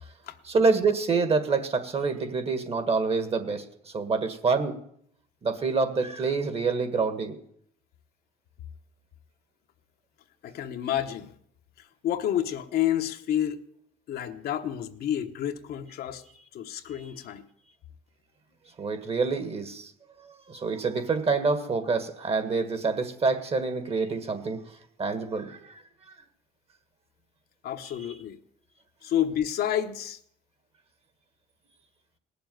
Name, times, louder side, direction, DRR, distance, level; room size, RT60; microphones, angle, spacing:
voice 1, 0.5-3.6 3.9-4.8 5.4-7.3 18.8-19.9 20.5-24.6 25.0-25.8, right 4 dB, 35° right, 1.7 m, -26 dB
voice 2, 10.4-11.4 11.8-13.6 14.1-16.2 16.5-17.4 27.6-28.4 29.0-30.2, left 11 dB, 65° left, 1.1 m, -29 dB
18.5 x 7.0 x 9.2 m
cardioid pair, 110°, 17 cm